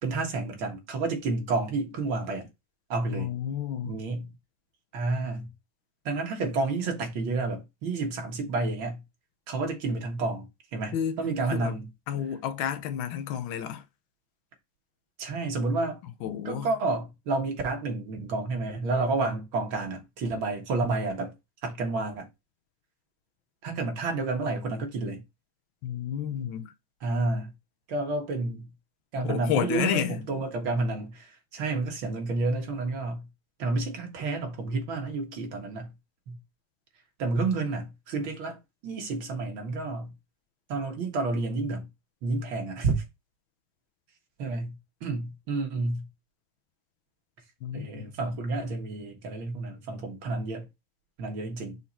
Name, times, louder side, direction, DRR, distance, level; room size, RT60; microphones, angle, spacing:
voice 1, 0.0-2.5 2.9-3.3 3.8-4.3 4.9-5.5 6.1-9.0 9.5-11.9 15.2-16.0 16.5-21.3 21.6-22.3 23.6-25.2 27.0-27.5 27.9-28.7 29.1-33.3 33.6-35.9 36.3-36.4 37.2-40.1 40.7-41.9 42.2-43.0 44.4-46.1 47.7-50.7 51.2-51.8, right 3 dB, 85° right, 2.4 m, -30 dB
voice 2, 3.1-4.0 10.9-11.2 11.5-11.8 12.1-13.8 16.2-16.7 25.8-26.7 29.2-30.4 47.6-48.2, left 9 dB, 80° left, 1.5 m, -31 dB
5.6 x 4.2 x 4.2 m
omnidirectional pair, 2.1 m